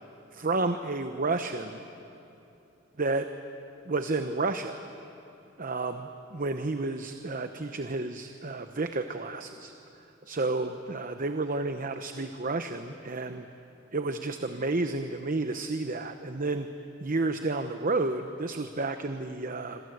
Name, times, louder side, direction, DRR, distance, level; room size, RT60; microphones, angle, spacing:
voice 1, 0.3-1.8 3.0-3.3 3.9-4.8 5.6-9.7 10.3-13.5 13.9-16.7 17.0-19.8, right 3 dB, 40° right, 8 dB, 0.9 m, -31 dB
26.5 x 26.5 x 8.0 m, 2.8 s
head